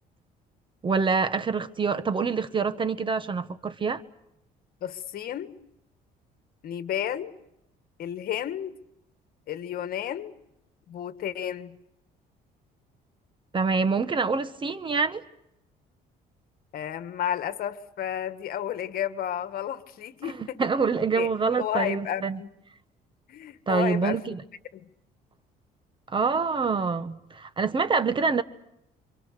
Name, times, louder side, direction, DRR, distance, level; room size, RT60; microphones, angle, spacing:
voice 1, 0.8-4.0 13.5-15.2 20.2-22.4 23.7-24.4 26.1-28.4, right 5 dB, 30° right, 1.3 m, -26 dB
voice 2, 4.8-5.5 6.6-7.3 8.0-8.7 9.5-10.3 10.9-11.8 16.7-20.7 21.1-21.3 21.6-22.5 23.3-24.2 24.7-24.9, left 10 dB, 60° left, 1.7 m, -32 dB
28.0 x 25.5 x 6.8 m
cardioid pair, 110°, 17 cm